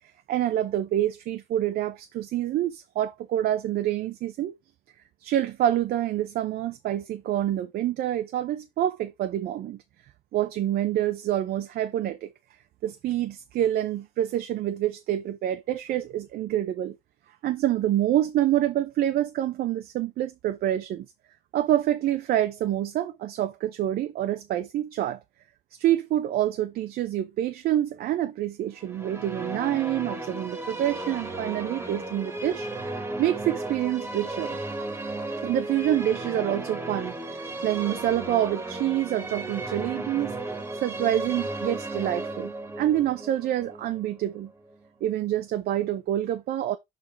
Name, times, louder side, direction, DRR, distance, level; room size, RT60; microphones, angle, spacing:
voice 1, 0.3-4.6 5.2-9.8 10.3-12.3 12.8-17.0 17.4-21.1 21.5-25.2 25.8-32.9 33.2-34.6 35.4-40.4 40.8-44.5 45.0-46.8, right 12 dB, 65° right, 0.6 m, -27 dB
sound 1, 28.8-44.8, right 2 dB, 15° right, 1.5 m, -34 dB
6.7 x 4.7 x 3.5 m
cardioid pair, 110°, 17 cm